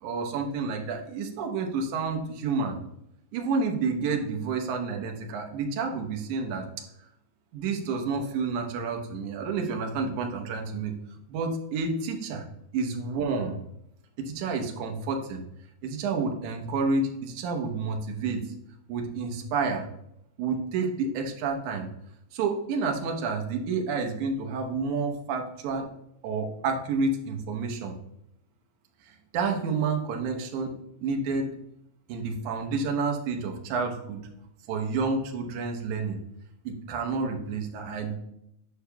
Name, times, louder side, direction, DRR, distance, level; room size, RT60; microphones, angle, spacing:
voice 1, 0.0-2.8 3.3-6.6 7.5-10.9 11.3-12.4 12.7-13.6 14.3-15.4 15.8-18.4 18.9-19.9 20.4-21.9 22.3-25.9 26.2-28.0 29.1-30.7 31.0-31.5 32.1-34.3 34.7-36.2 36.7-38.2, right 4 dB, 75° right, 3 dB, 1.8 m, -29 dB
8.5 x 5.9 x 2.3 m, 0.77 s
omnidirectional pair, 4.5 m